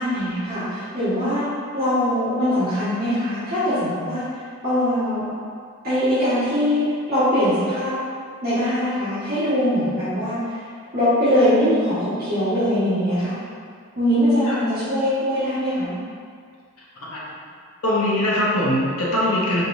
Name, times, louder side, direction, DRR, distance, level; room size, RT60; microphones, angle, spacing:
voice 1, 0.0-1.5 1.7-4.2 4.6-5.3 5.8-6.8 7.1-7.9 8.4-10.5 10.9-13.3 13.9-16.0, equal, 45° right, -15 dB, 1.4 m, -21 dB
voice 2, 17.8-19.6, left 1 dB, 85° left, -6 dB, 1.0 m, -21 dB
4.5 x 3.7 x 2.6 m, 2.1 s
head